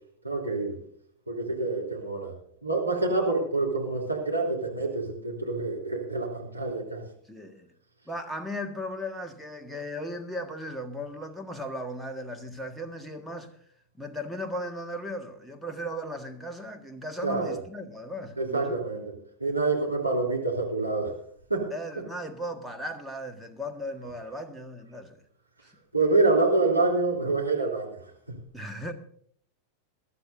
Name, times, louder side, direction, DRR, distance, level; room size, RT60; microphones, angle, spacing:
voice 1, 0.2-0.8 1.3-2.3 2.6-7.0 17.2-17.6 18.4-19.1 19.4-21.1 21.5-21.7 25.9-28.0 28.3-28.4, right 3 dB, 85° right, 3.1 m, -26 dB
voice 2, 7.3-7.7 8.1-13.5 14.0-18.8 21.7-25.2 25.6-25.7 28.5-28.9, equal, ahead, 1.6 m, -37 dB
22.0 x 12.0 x 2.7 m
figure-of-eight pair, 90°, 0 cm